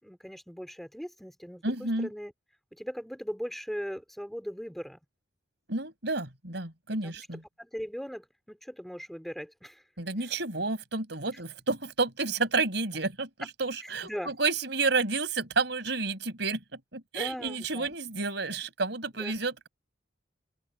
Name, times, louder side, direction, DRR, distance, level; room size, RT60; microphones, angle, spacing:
voice 1, 0.0-2.3 2.7-5.0 7.0-7.3 7.6-9.8 10.2-10.3 13.8-14.3 17.1-18.0 19.1-19.4, equal, ahead, 3.1 m, -39 dB
voice 2, 1.6-2.1 5.7-7.4 10.0-13.3 13.6-16.6 16.9-19.7, right 3 dB, 65° right, 5.4 m, -30 dB
open air
head